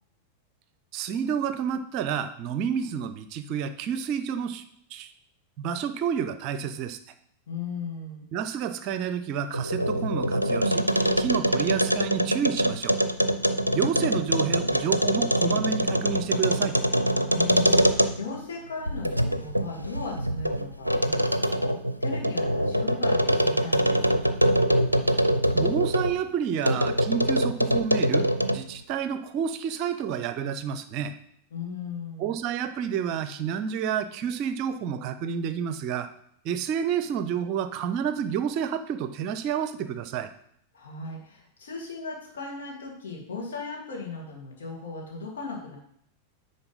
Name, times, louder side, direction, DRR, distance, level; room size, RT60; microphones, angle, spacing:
voice 1, 0.9-4.6 4.9-5.1 5.6-7.0 8.3-10.9 11.2-13.0 13.7-16.7 25.5-28.3 28.5-31.2 32.2-36.1 36.4-40.3, right 8 dB, 40° right, 11 dB, 0.6 m, -29 dB
voice 2, 7.5-8.3 13.4-13.8 17.3-24.1 31.5-32.3 40.7-45.8, left 4 dB, 65° left, -2 dB, 2.6 m, -37 dB
sound 1, 9.4-18.4 18.9-26.2 26.6-28.7, equal, 90° right, 0.4 m, -24 dB
9.7 x 4.1 x 5.3 m, 0.67 s
figure-of-eight pair, 90°, 0 cm